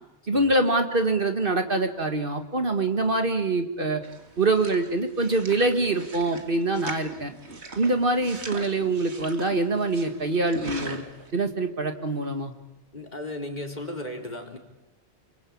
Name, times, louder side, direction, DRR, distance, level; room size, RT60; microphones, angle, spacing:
voice 1, 0.3-4.0 4.4-7.3 7.8-11.0 11.3-12.5, right 2 dB, 50° right, 6 dB, 2.1 m, -24 dB
sound 1, 4.0-11.3, right 3 dB, 75° right, 2.6 m, -41 dB
voice 2, 12.9-14.6, left 1 dB, 40° left, 2 dB, 4.0 m, -35 dB
29.5 x 23.0 x 8.7 m, 0.94 s
omnidirectional pair, 1.1 m